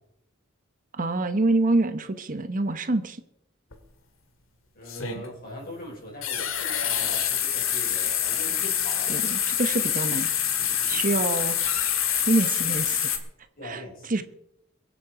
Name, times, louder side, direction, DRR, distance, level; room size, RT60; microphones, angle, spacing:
voice 1, 0.9-3.2 9.1-10.3 10.9-11.6 12.1-13.2 13.6-13.8 14.1-14.2, right 2 dB, 40° right, 10 dB, 0.9 m, -26 dB
sound 1, 3.7-3.8 4.9-5.3 6.2-13.2, left 9 dB, 75° left, 2.0 m, -26 dB
voice 2, 4.7-9.2 13.6-14.1, left 1 dB, 45° left, -2 dB, 5.3 m, -41 dB
23.0 x 7.8 x 4.8 m, 0.80 s
head